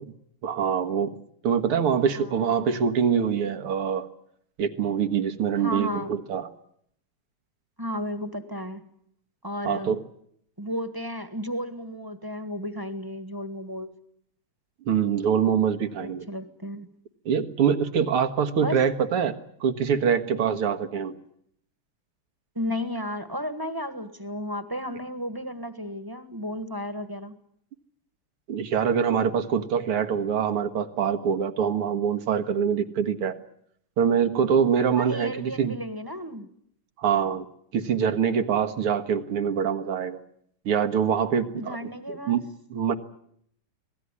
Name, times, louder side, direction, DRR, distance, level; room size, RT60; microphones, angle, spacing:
voice 1, 0.4-1.2 1.4-4.1 4.6-6.5 9.6-10.0 14.9-16.2 17.3-19.4 19.6-21.1 28.5-33.4 34.0-35.7 37.0-37.5 37.7-40.2 40.7-41.8 42.1-42.4 42.7-43.0, right 7 dB, 85° right, 8 dB, 2.4 m, -24 dB
voice 2, 2.1-2.7 5.5-6.1 7.8-8.8 9.4-10.0 10.6-13.9 16.0-16.9 18.6-18.8 22.5-27.3 35.0-36.5 41.5-42.4, equal, 10° right, 10 dB, 1.3 m, -33 dB
26.0 x 18.5 x 9.9 m, 0.71 s
omnidirectional pair, 2.4 m